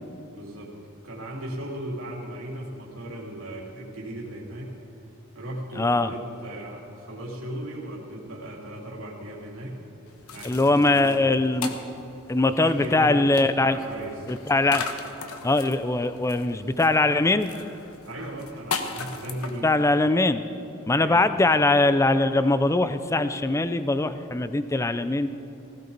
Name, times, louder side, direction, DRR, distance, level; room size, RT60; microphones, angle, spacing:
voice 1, 0.3-0.7 1.0-4.7 5.3-9.8 10.3-11.3 12.4-13.4 13.6-14.3 18.1-19.7 20.9-21.2, right 1 dB, 70° right, -4 dB, 3.0 m, -36 dB
voice 2, 5.8-6.1 10.4-11.8 12.3-13.8 14.3-14.8 15.4-17.5 19.6-20.4 20.9-25.3, left 2 dB, 15° left, 11 dB, 0.4 m, -21 dB
sound 1, 10.1-20.1, left 5 dB, 85° left, 1.2 m, -38 dB
19.5 x 16.0 x 4.0 m, 2.8 s
head